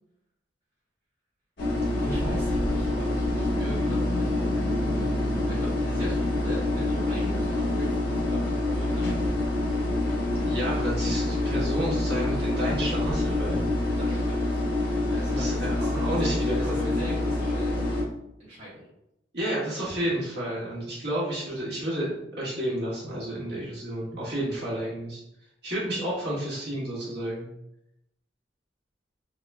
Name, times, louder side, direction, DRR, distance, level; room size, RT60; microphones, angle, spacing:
sound 1, 1.6-18.0, left 2 dB, 60° left, 1.1 m, -26 dB
voice 1, 2.0-5.1 5.5-9.4 13.8-14.6 15.1-17.8 18.4-18.9, equal, 35° right, -10 dB, 1.0 m, -40 dB
voice 2, 10.4-13.7 15.4-16.9 19.3-25.2 25.6-27.5, right 1 dB, 60° right, -7 dB, 1.5 m, -31 dB
3.6 x 3.0 x 2.2 m, 0.83 s
head